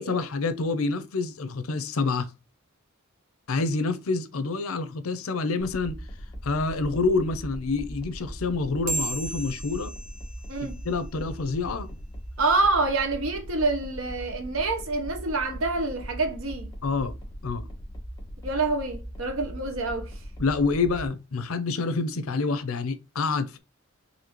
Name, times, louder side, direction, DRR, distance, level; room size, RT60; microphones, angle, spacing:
voice 1, 0.0-2.3 3.5-6.0 6.4-9.9 10.6-11.9 16.8-17.1 17.4-17.7 20.4-23.6, left 3 dB, 90° left, 0.6 m, -27 dB
sound 1, 5.6-21.1, equal, 20° left, 1.0 m, -40 dB
sound 2, 8.9-11.7, right 2 dB, 40° right, 1.1 m, -36 dB
voice 2, 12.4-16.7 18.4-20.2, right 3 dB, 75° right, 0.9 m, -27 dB
4.2 x 2.7 x 2.9 m
head